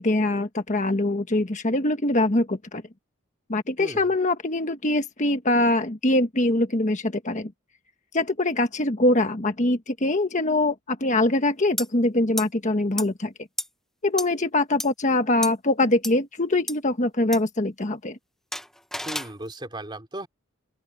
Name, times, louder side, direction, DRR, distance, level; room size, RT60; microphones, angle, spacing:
voice 1, 0.0-2.8 3.5-7.5 8.1-13.3 14.0-18.2, left 2 dB, 35° left, 1.4 m, -23 dB
voice 2, 3.8-4.1 19.0-20.3, right 1 dB, 25° right, 3.4 m, -36 dB
sound 1, 11.8-11.9 12.4-12.5 13.0-13.1 13.6-13.7 14.2-14.3 14.8-14.9 15.4-15.5 16.0-16.1 16.7-16.8 17.3-17.4 18.5-19.3, left 1 dB, ahead, 0.6 m, -30 dB
open air
head